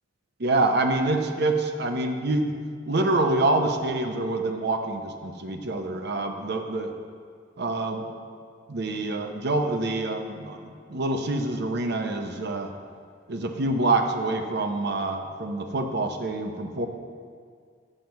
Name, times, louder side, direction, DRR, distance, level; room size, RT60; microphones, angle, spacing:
voice 1, 0.4-2.6 2.9-6.9 7.6-8.1 8.7-12.7 13.3-16.9, right 2 dB, 60° right, 5 dB, 0.8 m, -26 dB
7.5 x 6.4 x 6.0 m, 2.1 s
head